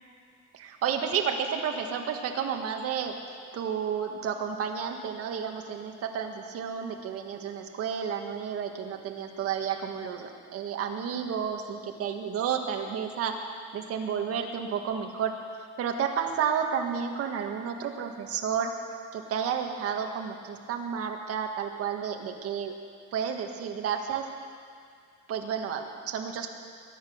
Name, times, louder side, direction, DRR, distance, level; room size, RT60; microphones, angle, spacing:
voice 1, 0.5-3.1 3.5-15.3 15.8-18.7 19.1-22.7 23.1-24.3 25.3-26.5, right 7 dB, 50° right, 3 dB, 1.7 m, -31 dB
22.0 x 10.0 x 6.5 m, 2.2 s
cardioid pair, 150°, 30 cm